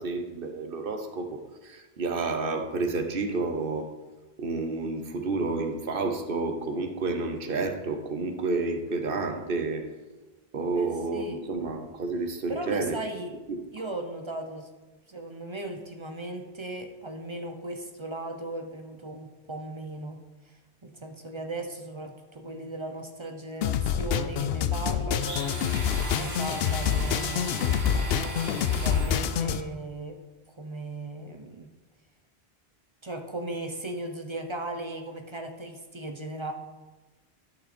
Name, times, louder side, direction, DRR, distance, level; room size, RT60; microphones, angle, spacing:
voice 1, 0.0-3.9 4.4-9.8 10.5-13.0 13.5-13.6, right 3 dB, 60° right, 6 dB, 1.1 m, -30 dB
voice 2, 12.5-13.3 13.7-14.7 15.1-20.2 20.4-25.5 26.1-28.0 28.4-30.2 30.6-31.7 33.0-36.5, right 2 dB, 30° right, 4 dB, 0.7 m, -37 dB
sound 1, 23.6-29.6, left 8 dB, 75° left, 0.8 m, -27 dB
Domestic sounds home sounds, 25.2-29.6, right 2 dB, 80° right, 1.7 m, -38 dB
11.5 x 6.0 x 4.3 m, 1.2 s
omnidirectional pair, 1.1 m